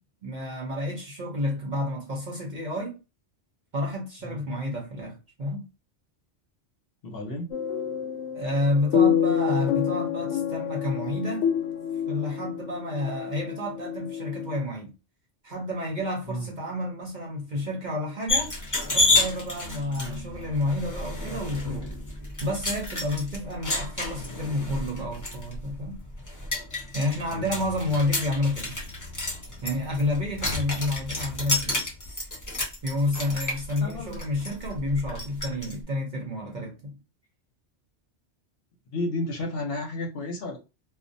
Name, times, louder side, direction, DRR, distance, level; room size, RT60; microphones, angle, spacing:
voice 1, 0.2-3.0 3.7-5.7 8.3-11.5 12.1-14.9 15.4-18.5 18.9-21.9 22.4-26.0 26.9-28.8 29.6-31.9 32.8-37.0, left 1 dB, 50° right, 0.6 m, -30 dB
voice 2, 7.0-7.5 16.3-16.5 20.0-20.2 27.3-27.8 33.8-34.2 38.9-40.6, left 1 dB, 60° left, 0.8 m, -32 dB
sound 1, 7.5-14.6, left 8 dB, 90° left, 0.9 m, -28 dB
sound 2, 18.3-35.7, left 2 dB, 20° left, 0.6 m, -30 dB
2.4 x 2.0 x 2.5 m
omnidirectional pair, 1.2 m